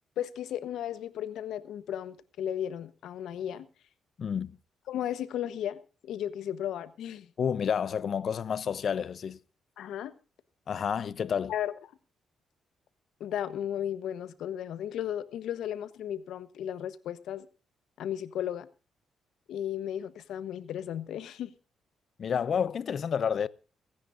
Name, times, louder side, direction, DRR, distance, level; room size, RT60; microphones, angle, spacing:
voice 1, 0.2-3.7 4.9-7.3 9.8-10.1 11.5-11.7 13.2-17.5 18.0-18.7 19.5-21.5, left 10 dB, 80° left, 1.0 m, -35 dB
voice 2, 4.2-4.5 7.4-9.4 10.7-11.5 22.2-23.5, left 7 dB, 50° left, 0.6 m, -29 dB
30.0 x 10.0 x 2.6 m
cardioid pair, 130°, 0 cm